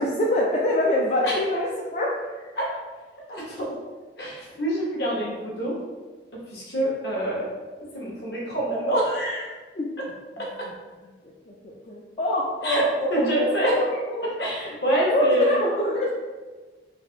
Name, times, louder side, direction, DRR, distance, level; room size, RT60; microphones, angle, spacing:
voice 1, 0.0-2.5 9.8-9.9 10.4-10.5 11.5-14.2 15.1-16.1, left 1 dB, 40° left, -4 dB, 0.3 m, -25 dB
voice 2, 3.3-3.7 4.2-5.8 6.5-7.5 7.9-9.5 10.4-10.7 12.6-14.0 14.4-15.6, right 1 dB, 65° left, -4 dB, 1.0 m, -26 dB
3.3 x 2.5 x 2.7 m, 1.3 s
head